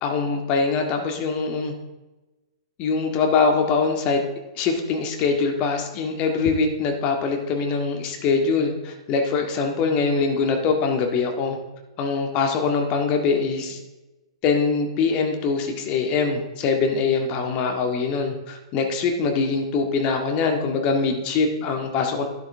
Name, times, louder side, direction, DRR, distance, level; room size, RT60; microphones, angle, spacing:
voice 1, 0.0-1.7 2.8-4.2 4.6-11.6 12.0-13.8 14.4-22.3, left 4 dB, 35° left, 3 dB, 1.9 m, -23 dB
12.0 x 10.5 x 3.6 m, 1.1 s
figure-of-eight pair, 110°, 3 cm